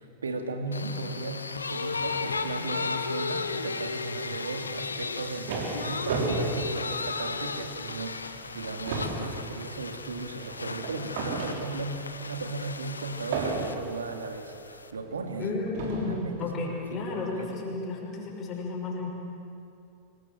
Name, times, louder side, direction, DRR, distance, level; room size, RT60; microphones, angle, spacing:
voice 1, 0.0-15.5 16.1-17.5, right 3 dB, 70° right, 5 dB, 2.5 m, -36 dB
sound 1, 0.7-14.9, left 4 dB, 75° left, 1.0 m, -35 dB
sound 2, 4.9-7.6 8.1-8.2 8.5-12.1 13.3-14.1 14.9-15.0 15.7-16.3, right 3 dB, 55° right, 4.3 m, -33 dB
voice 2, 15.4-19.1, left 3 dB, 30° left, -1 dB, 6.1 m, -32 dB
25.5 x 21.5 x 7.7 m, 2.6 s
figure-of-eight pair, 90°, 0 cm